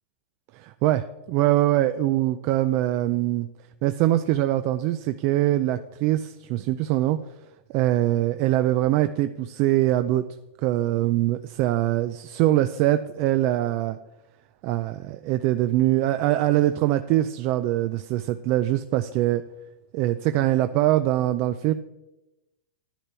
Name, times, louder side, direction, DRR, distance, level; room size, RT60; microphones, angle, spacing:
voice 1, 0.5-3.5 3.8-7.2 7.7-10.2 10.6-14.0 14.6-19.4 19.9-21.7, right 14 dB, 35° right, 11 dB, 0.4 m, -23 dB
10.0 x 10.0 x 4.4 m, 0.97 s
hypercardioid pair, 145°, 7 cm